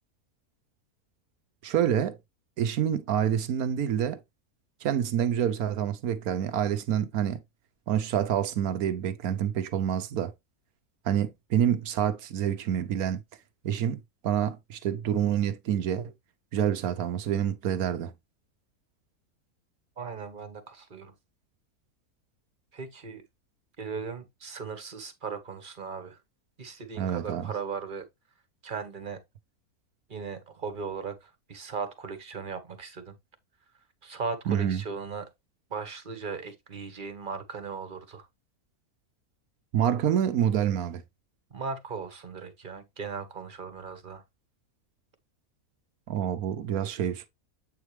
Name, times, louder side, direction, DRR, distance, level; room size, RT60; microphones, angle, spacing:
voice 1, 1.6-2.2 2.6-4.2 4.8-7.4 7.9-10.3 11.0-13.2 13.6-16.1 16.5-18.2 27.0-27.5 34.5-34.8 39.7-41.0 46.1-47.3, right 9 dB, 75° right, 1.3 m, -27 dB
voice 2, 20.0-21.1 22.7-23.2 23.8-26.2 26.6-28.1 28.6-29.2 30.1-33.1 34.0-35.3 35.7-38.3 41.5-44.2, right 5 dB, 35° right, 1.4 m, -37 dB
8.3 x 4.7 x 3.3 m
omnidirectional pair, 1.6 m